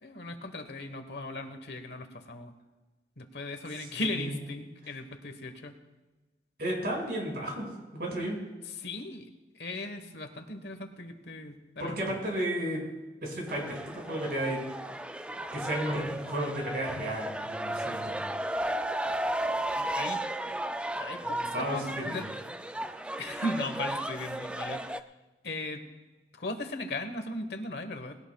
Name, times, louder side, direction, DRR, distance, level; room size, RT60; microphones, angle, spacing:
voice 1, 0.0-2.5 3.2-5.8 8.8-9.3 9.5-12.0 19.7-20.2 21.0-22.2 23.2-25.0 25.4-25.8 26.3-28.2, left 2 dB, 65° left, 7 dB, 1.2 m, -37 dB
voice 2, 3.8-4.4 6.6-7.7 7.9-8.4 11.8-12.8 13.2-14.7 15.5-18.3 21.2-22.2, right 1 dB, 65° right, -1 dB, 5.3 m, -33 dB
sound 1, 13.5-25.0, right 1 dB, 5° right, 0.3 m, -34 dB
19.5 x 17.0 x 2.3 m, 1.2 s
head